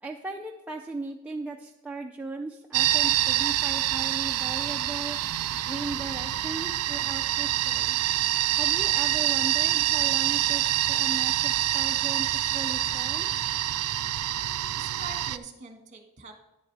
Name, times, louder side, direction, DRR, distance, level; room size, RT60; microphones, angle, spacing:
voice 1, 0.0-5.2 5.6-8.0 8.6-12.3 12.5-13.3, right 2 dB, 5° right, 0 dB, 0.5 m, -37 dB
sound 1, 2.7-15.4, right 13 dB, 85° right, 0.4 m, -26 dB
voice 2, 14.8-16.3, right 3 dB, 35° right, 4 dB, 1.6 m, -43 dB
10.5 x 8.9 x 3.4 m, 1.0 s
head